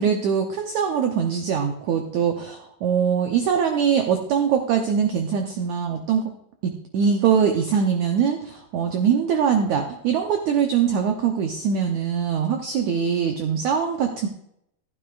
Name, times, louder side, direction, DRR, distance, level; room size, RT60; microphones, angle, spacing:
voice 1, 0.0-6.3 6.6-14.3, right 7 dB, 90° right, 4 dB, 1.6 m, -22 dB
14.5 x 9.8 x 2.4 m, 0.76 s
omnidirectional pair, 4.4 m